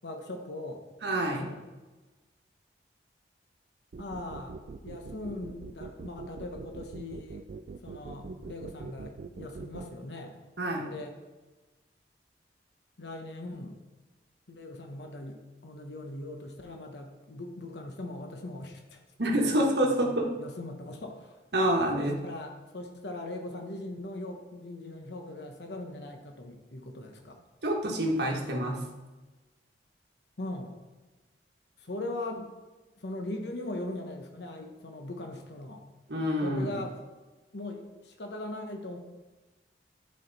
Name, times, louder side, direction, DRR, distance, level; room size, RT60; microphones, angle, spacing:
voice 1, 0.0-0.8 1.2-1.6 4.0-4.6 4.8-7.5 7.8-10.4 10.8-11.1 13.0-13.8 14.5-19.0 19.3-21.4 21.9-27.4 30.4-30.8 31.8-32.5 33.0-35.8 36.4-37.0 37.5-39.0, left 2 dB, 70° left, 3 dB, 0.9 m, -40 dB
voice 2, 1.0-1.4 10.6-10.9 19.2-20.3 21.5-22.2 27.6-28.9 36.1-36.8, right 1 dB, 70° right, 0 dB, 1.3 m, -27 dB
sound 1, 3.9-9.8, right 4 dB, 50° right, 0.3 m, -42 dB
10.5 x 4.5 x 4.0 m, 1.2 s
head